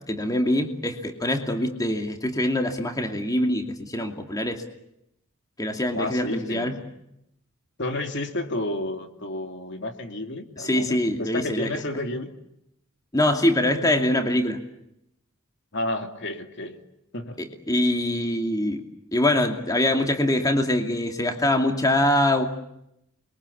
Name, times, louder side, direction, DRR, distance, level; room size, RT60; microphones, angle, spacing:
voice 1, 0.1-4.6 5.6-6.8 10.6-11.7 13.1-14.6 17.4-18.8 19.1-22.5, left 1 dB, 15° left, 4 dB, 2.6 m, -24 dB
voice 2, 5.9-6.8 7.8-12.3 15.7-16.8 17.1-17.4, left 1 dB, 55° left, 5 dB, 2.8 m, -31 dB
29.0 x 23.5 x 8.6 m, 0.80 s
head